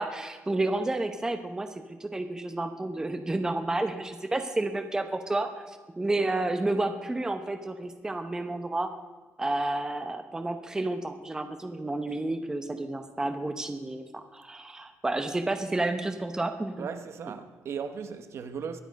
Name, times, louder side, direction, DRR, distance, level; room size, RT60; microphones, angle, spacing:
voice 1, 0.0-1.7 2.0-8.9 9.4-16.9, right 2 dB, 10° right, 0.8 m, -30 dB
voice 2, 16.8-18.8, right 6 dB, 55° right, 1.0 m, -37 dB
22.5 x 9.0 x 5.2 m
cardioid pair, 155°, 6 cm